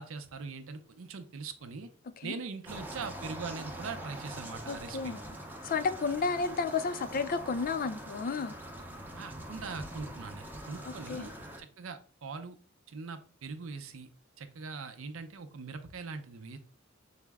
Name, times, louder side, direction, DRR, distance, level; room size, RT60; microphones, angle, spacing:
voice 1, 0.0-1.9 2.2-5.2 9.1-12.6 12.9-14.1 14.4-16.6, right 4 dB, 80° right, 0.5 m, -42 dB
sound 1, 2.7-11.6, right 1 dB, 10° right, 0.6 m, -44 dB
voice 2, 4.7-5.3 5.6-8.6 11.1-11.3, left 4 dB, 45° left, 0.4 m, -32 dB
5.6 x 2.0 x 3.4 m
head